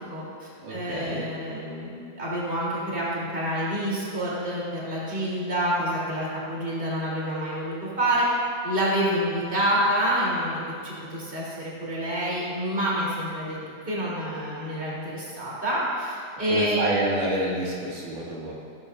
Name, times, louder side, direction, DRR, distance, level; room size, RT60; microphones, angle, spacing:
voice 1, 0.1-1.9 2.2-8.3 8.6-13.6 13.8-16.8, right 1 dB, 15° right, -7 dB, 3.8 m, -27 dB
voice 2, 0.6-1.2 16.5-18.5, right 1 dB, 85° right, -5 dB, 3.8 m, -28 dB
16.0 x 15.5 x 2.8 m, 2.4 s
omnidirectional pair, 3.6 m